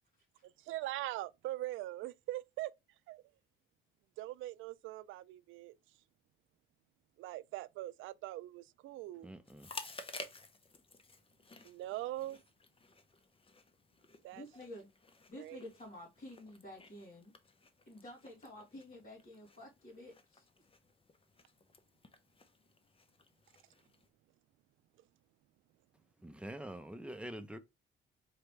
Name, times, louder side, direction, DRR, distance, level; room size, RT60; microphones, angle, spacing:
voice 1, 0.4-2.7 3.1-3.2 4.2-5.8 7.2-9.3 11.6-12.4 14.2-14.5 15.4-15.6, right 15 dB, 90° right, 0.4 m, -42 dB
voice 2, 9.2-9.7 26.2-27.6, right 1 dB, 5° right, 0.8 m, -45 dB
Chewing mastication, 9.4-24.1, left 3 dB, 25° left, 0.9 m, -54 dB
voice 3, 14.3-14.9 15.3-17.3 17.8-20.5, left 1 dB, 45° left, 3.1 m, -51 dB
4.7 x 3.3 x 3.2 m
cardioid pair, 90°, 20 cm